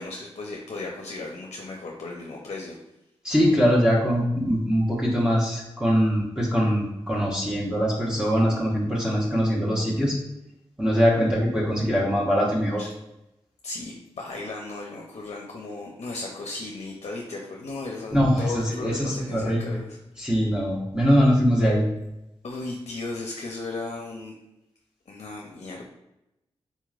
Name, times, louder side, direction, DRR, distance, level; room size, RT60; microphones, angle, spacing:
voice 1, 0.0-2.8 12.8-12.9 13.6-20.0 22.4-24.3 25.1-25.9, left 3 dB, 65° left, 0 dB, 0.6 m, -36 dB
voice 2, 3.2-10.1 10.8-12.8 18.1-19.7 20.2-21.8, equal, 5° right, -4 dB, 1.0 m, -22 dB
4.0 x 3.0 x 2.4 m, 0.88 s
cardioid pair, 45°, 11 cm